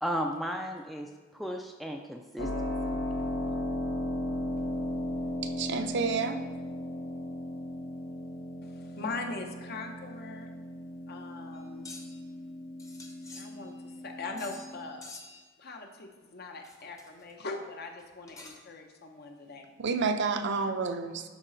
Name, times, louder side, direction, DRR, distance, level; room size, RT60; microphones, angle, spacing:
voice 1, 0.0-3.0, equal, ahead, 2 dB, 0.4 m, -35 dB
Keyboard (musical), 2.4-14.9, left 1 dB, 80° left, 0.9 m, -36 dB
voice 2, 5.4-6.4 19.8-21.2, right 4 dB, 65° right, 7 dB, 0.6 m, -29 dB
voice 3, 8.6-10.5 11.1-11.9 13.3-15.1 15.6-19.6, left 3 dB, 55° left, 3 dB, 0.8 m, -41 dB
sound 1, 11.5-12.2 12.8-13.9 14.4-14.7 15.0-15.5 16.6-17.3 18.0-18.8, left 3 dB, 15° left, 0.8 m, -49 dB
11.0 x 4.1 x 3.9 m, 1.4 s
head